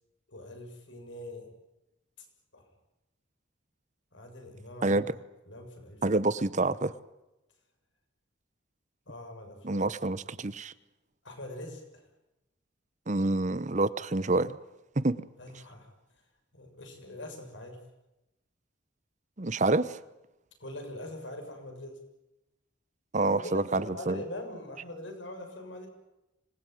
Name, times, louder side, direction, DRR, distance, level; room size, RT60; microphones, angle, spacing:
voice 1, 0.3-1.5 2.2-2.3 2.5-2.6 4.1-5.1 5.5-6.0 9.1-9.8 11.2-12.0 15.4-15.9 16.5-17.8 20.6-22.0 23.2-25.9, left 1 dB, 70° left, 4 dB, 6.7 m, -42 dB
voice 2, 4.8-5.1 6.0-7.0 9.6-10.7 13.1-14.6 15.0-15.2 19.4-20.0 23.1-24.2, right 2 dB, 40° right, 16 dB, 0.9 m, -27 dB
26.0 x 20.0 x 9.2 m, 0.95 s
head